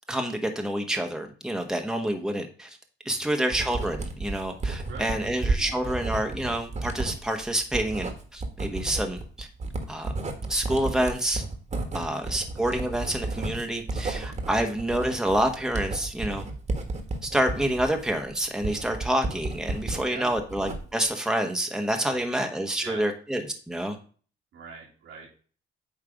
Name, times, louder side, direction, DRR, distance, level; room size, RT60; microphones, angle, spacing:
voice 1, 0.1-2.8 3.0-9.5 9.9-10.1 10.5-11.4 11.9-16.4 17.2-24.0, right 1 dB, 5° right, 4 dB, 1.1 m, -28 dB
Writing, 3.5-20.0 20.4-21.1, right 3 dB, 35° right, 1.6 m, -32 dB
voice 2, 12.0-12.3 14.3-14.5 20.0-20.3 22.1-22.4 22.8-23.0 24.5-25.3, right 5 dB, 85° right, -2 dB, 2.7 m, -42 dB
8.9 x 3.2 x 5.0 m, 0.41 s
cardioid pair, 90°, 20 cm